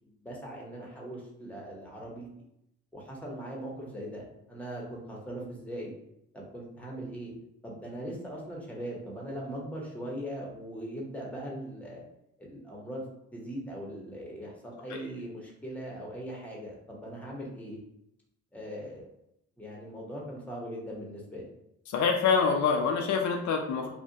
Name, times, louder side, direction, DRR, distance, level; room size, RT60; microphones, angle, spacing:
voice 1, 0.0-2.3 2.9-4.2 4.5-5.9 6.3-7.3 7.6-12.0 12.4-13.0 13.3-17.8 18.5-19.1 19.6-21.4, right 1 dB, 5° left, -3 dB, 0.8 m, -40 dB
voice 2, 21.9-23.9, left 5 dB, 70° left, 3 dB, 0.5 m, -26 dB
2.4 x 2.1 x 2.7 m, 0.80 s
cardioid pair, 90°, 30 cm